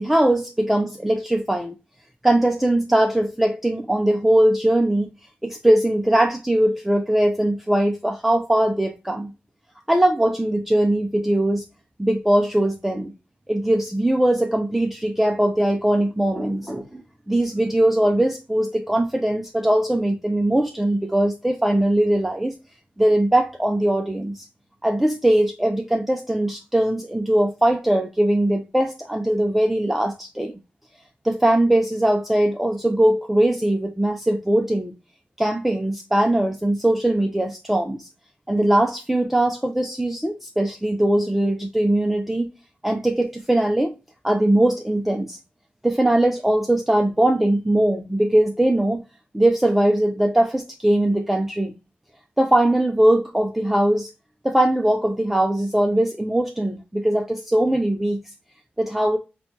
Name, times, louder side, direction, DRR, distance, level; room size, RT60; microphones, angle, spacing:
voice 1, 0.0-1.7 2.2-5.1 5.4-9.3 9.9-11.6 12.0-13.1 13.5-17.0 17.3-22.5 23.0-24.5 24.8-30.5 31.2-34.9 35.4-38.1 38.5-42.5 42.8-44.0 44.2-45.4 45.8-49.0 49.3-51.7 52.4-54.1 54.4-58.2 58.8-59.2, right 1 dB, 5° right, 0.4 m, -20 dB
6.1 x 2.2 x 2.8 m
wide cardioid pair, 155°, 4 cm